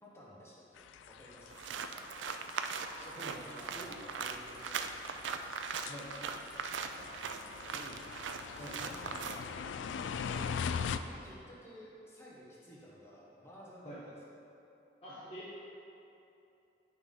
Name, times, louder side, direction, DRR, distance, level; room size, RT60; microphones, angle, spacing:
voice 1, 0.0-2.1 3.0-5.3 6.8-8.0 8.4-10.4 11.1-14.4, equal, 15° left, -5 dB, 1.2 m, -54 dB
sound 1, 0.8-11.0, left 6 dB, 90° left, 0.3 m, -42 dB
sound 2, 1.5-9.4, right 6 dB, 90° right, 0.4 m, -40 dB
voice 2, 2.8-3.4 3.7-4.0 5.9-6.1 8.6-8.7 11.0-11.1 13.8-14.0 15.0-15.5, equal, 35° left, -8 dB, 1.0 m, -47 dB
10.0 x 5.6 x 3.7 m, 2.8 s
head